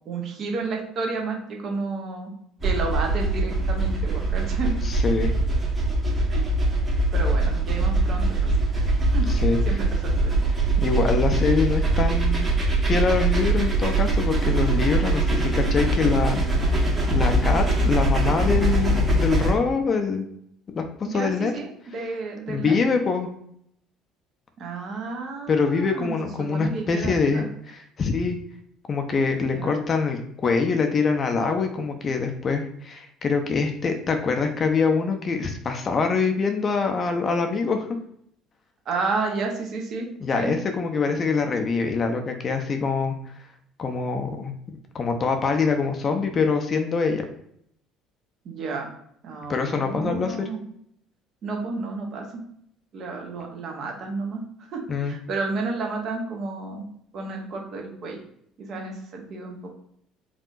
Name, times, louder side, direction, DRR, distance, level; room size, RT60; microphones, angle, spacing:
voice 1, 0.1-2.3 2.6-4.7 6.3-6.5 7.1-8.5 9.1-9.3 9.7-10.4 17.1-17.3 21.0-22.7 24.6-26.1 26.4-27.5 29.5-29.8 38.9-40.1 40.3-40.5 48.4-48.9 49.2-50.6 51.4-52.2 52.9-54.4 54.7-56.9 57.1-58.2 58.6-59.7, right 3 dB, 45° right, 1 dB, 1.1 m, -31 dB
Steam Train Revisited, 2.6-19.5, right 2 dB, 30° right, 1.2 m, -22 dB
voice 2, 4.8-5.3 9.3-9.8 10.8-12.5 12.8-20.3 20.7-21.5 22.5-23.3 25.5-28.4 28.9-37.9 40.2-43.1 43.8-44.5 44.9-47.2 49.5-50.5 54.9-55.1, left 4 dB, 35° left, 5 dB, 0.6 m, -24 dB
4.7 x 2.7 x 2.5 m, 0.71 s
figure-of-eight pair, 55°, 0 cm